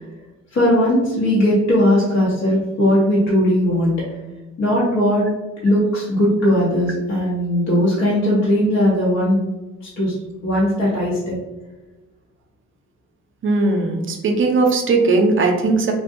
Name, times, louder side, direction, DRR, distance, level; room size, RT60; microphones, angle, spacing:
voice 1, 0.5-3.9 4.6-5.2 5.6-9.4 10.0-10.1 10.4-11.4, equal, 60° left, -7 dB, 0.8 m, -18 dB
voice 2, 13.4-15.9, right 3 dB, 40° right, 3 dB, 0.5 m, -18 dB
2.6 x 2.1 x 2.5 m, 1.1 s
cardioid pair, 90°, 30 cm